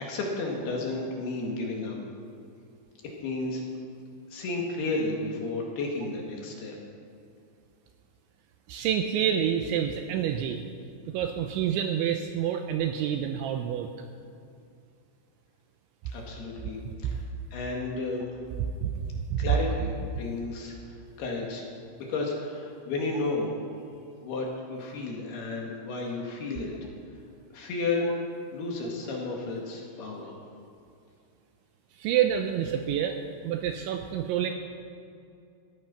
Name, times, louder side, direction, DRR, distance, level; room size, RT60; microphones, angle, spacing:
voice 1, 0.0-2.0 3.2-3.6 4.3-6.7 16.0-16.8 17.0-17.2 17.5-18.2 19.4-21.6 22.1-23.5 24.2-26.7 27.5-28.1 28.5-30.4, left 3 dB, 60° left, -1 dB, 3.3 m, -32 dB
voice 2, 8.7-10.6 11.1-13.9 16.9-17.2 18.8-19.5 32.0-34.5, right 9 dB, 85° right, 6 dB, 2.7 m, -28 dB
17.0 x 13.5 x 5.8 m, 2.5 s
omnidirectional pair, 6.0 m